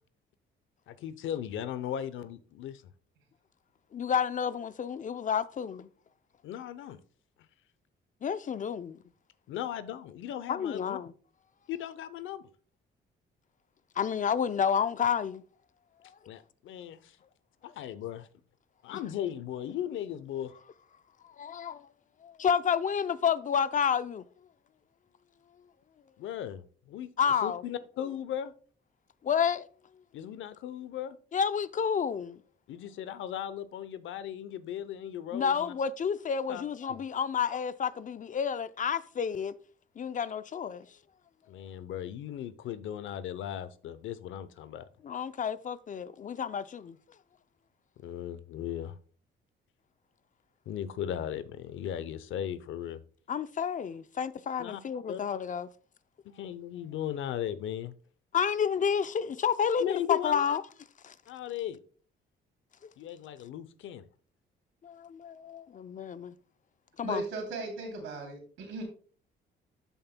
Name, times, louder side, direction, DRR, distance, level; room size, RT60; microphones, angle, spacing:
voice 1, 0.9-2.8 6.4-7.0 9.5-11.0 11.7-12.5 16.3-17.2 17.6-18.3 18.8-20.5 26.2-27.1 27.4-28.5 30.1-31.2 32.7-35.7 36.5-36.6 36.9-37.0 41.5-44.9 48.0-48.9 50.7-53.0 54.6-54.8 55.1-55.2 56.3-57.9 59.8-60.6 61.3-61.8 63.0-64.1, left 10 dB, 80° left, 0.7 m, -37 dB
voice 2, 3.9-5.9 8.2-9.0 10.5-11.1 14.0-15.4 21.4-21.9 22.2-24.2 27.2-27.6 29.2-29.7 31.3-32.4 35.3-39.5 40.0-40.9 45.0-47.0 53.3-55.7 58.3-60.6 61.0-61.1 64.8-66.3 67.0-67.2, left 7 dB, 40° left, 0.5 m, -30 dB
voice 3, 67.0-68.8, right 2 dB, 85° right, 3.0 m, -37 dB
12.5 x 5.4 x 2.2 m
cardioid pair, 90°, 20 cm